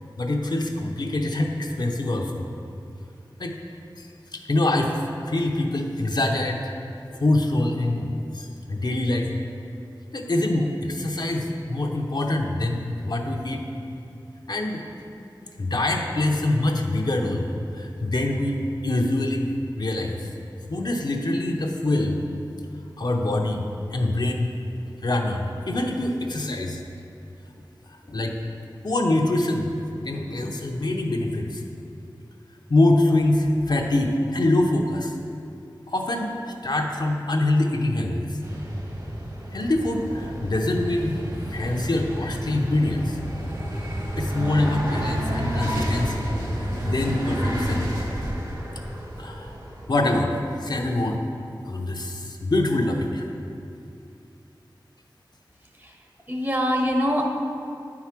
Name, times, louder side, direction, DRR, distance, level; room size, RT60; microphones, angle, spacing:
voice 1, 0.2-2.4 3.4-3.5 4.0-6.7 7.2-9.3 10.1-13.6 14.5-14.8 15.6-17.5 17.7-19.5 19.8-20.3 20.7-22.2 23.0-24.5 25.0-26.8 27.9-28.4 28.8-29.7 30.0-31.6 32.7-35.2 35.9-36.3 36.6-38.2 39.5-41.2 41.5-43.2 44.2-46.3 46.6-47.9 49.2-49.6 49.9-51.2 51.6-53.3, left 1 dB, 60° left, 1 dB, 0.7 m, -24 dB
sound 1, 38.4-49.9, equal, 45° right, 1.6 m, -30 dB
voice 2, 56.3-57.3, equal, 25° right, 1 dB, 1.0 m, -24 dB
8.9 x 4.8 x 5.9 m, 2.6 s
wide cardioid pair, 75°, 8 cm